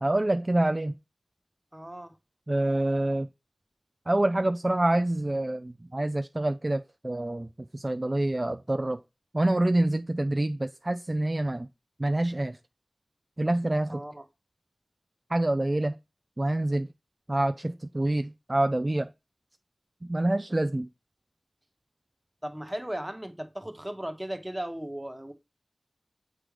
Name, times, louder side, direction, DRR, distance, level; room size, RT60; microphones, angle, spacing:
voice 1, 0.0-0.9 2.5-3.3 4.1-9.0 9.3-11.7 12.0-12.6 13.4-14.0 15.3-16.0 16.4-16.9 17.3-19.1 20.1-20.9, right 1 dB, 30° right, 0.3 m, -26 dB
voice 2, 1.7-2.2 13.9-14.3 22.4-25.3, right 1 dB, 10° right, 1.1 m, -36 dB
7.5 x 3.2 x 5.0 m
wide cardioid pair, 60°, 0 cm